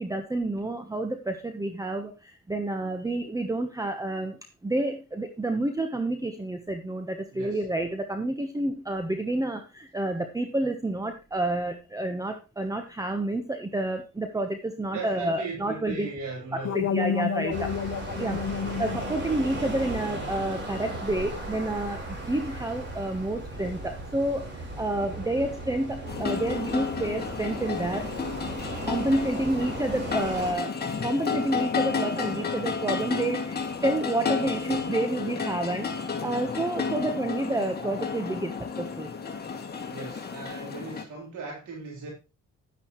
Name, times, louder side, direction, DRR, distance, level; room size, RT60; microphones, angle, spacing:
voice 1, 0.0-16.1 16.7-17.7 18.2-18.4 18.8-28.1 28.9-30.7 31.0-35.9 36.2-39.1, right 1 dB, 10° right, 1.1 m, -29 dB
voice 2, 7.3-7.6 14.9-16.8 39.9-42.1, right 4 dB, 80° right, 3.9 m, -38 dB
sound 1, 16.6-21.6, left 7 dB, 55° left, 0.9 m, -32 dB
sound 2, 17.5-30.5, right 1 dB, 35° right, 4.6 m, -37 dB
sound 3, 26.1-41.0, left 5 dB, 30° left, 2.3 m, -32 dB
10.5 x 9.6 x 3.1 m
cardioid pair, 90°, 30 cm